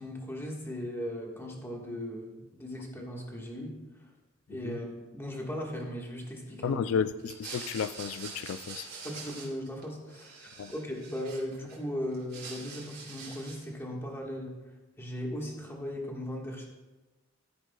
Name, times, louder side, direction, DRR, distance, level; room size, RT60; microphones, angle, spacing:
voice 1, 0.0-3.8 4.5-7.0 9.0-14.6 15.0-16.7, equal, 10° left, -1 dB, 1.4 m, -38 dB
voice 2, 6.6-8.9 10.6-10.7, left 7 dB, 75° left, 14 dB, 0.3 m, -32 dB
sound 1, 7.2-9.8 10.1-11.8 12.1-13.7, right 4 dB, 55° right, 2.7 m, -45 dB
13.5 x 9.4 x 2.3 m, 1.1 s
head